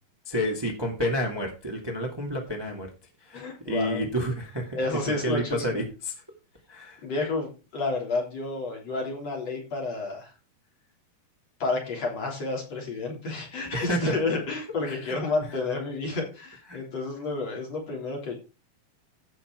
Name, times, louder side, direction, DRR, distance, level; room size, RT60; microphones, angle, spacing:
voice 1, 0.2-2.9 3.2-4.8 5.2-6.1 6.7-7.0 13.7-14.4 15.0-15.1 16.7-16.8, equal, 10° right, 1 dB, 1.3 m, -30 dB
voice 2, 3.3-4.1 4.7-5.8 7.0-10.3 11.6-18.4, left 3 dB, 45° left, -1 dB, 4.4 m, -30 dB
15.0 x 5.7 x 4.6 m, 0.31 s
omnidirectional pair, 4.4 m